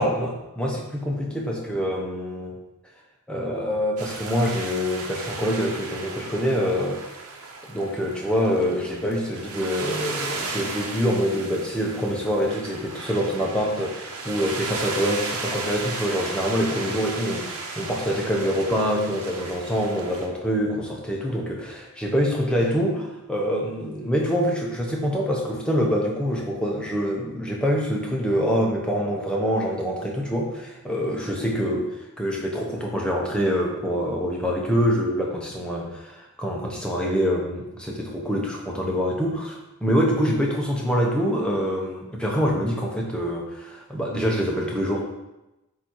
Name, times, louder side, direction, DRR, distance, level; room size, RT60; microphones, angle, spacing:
voice 1, 0.0-2.6 3.3-7.2 7.7-45.0, equal, 5° left, -2 dB, 0.9 m, -25 dB
sound 1, 4.0-20.3, right 3 dB, 90° right, 1.0 m, -35 dB
8.3 x 2.8 x 4.6 m, 0.96 s
head